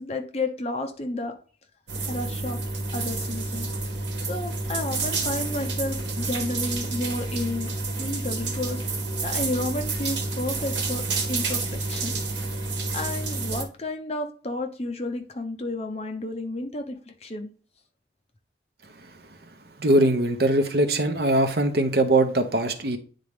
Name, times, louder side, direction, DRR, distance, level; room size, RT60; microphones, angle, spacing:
voice 1, 0.0-1.3 2.1-2.6 2.9-3.7 4.3-7.7 8.0-8.8 9.2-11.0 11.3-12.1 12.5-12.6 12.9-17.5, left 2 dB, 35° left, 0.9 m, -31 dB
sound 1, 1.9-13.6, right 3 dB, 80° right, 1.4 m, -29 dB
voice 2, 19.8-23.0, right 1 dB, 60° right, 0.8 m, -21 dB
9.5 x 3.8 x 3.5 m
head